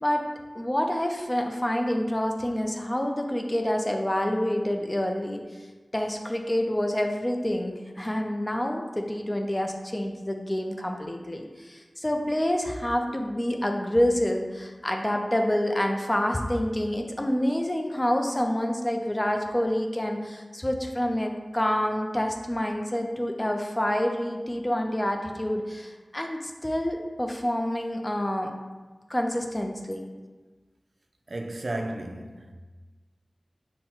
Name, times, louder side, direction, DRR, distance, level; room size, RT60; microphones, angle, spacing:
voice 1, 0.5-5.7 5.9-28.5 29.1-30.0, left 1 dB, 25° left, 0.4 m, -27 dB
voice 2, 31.3-32.5, right 1 dB, 60° right, 0.4 m, -33 dB
5.5 x 2.1 x 4.3 m
wide cardioid pair, 70°, 0 cm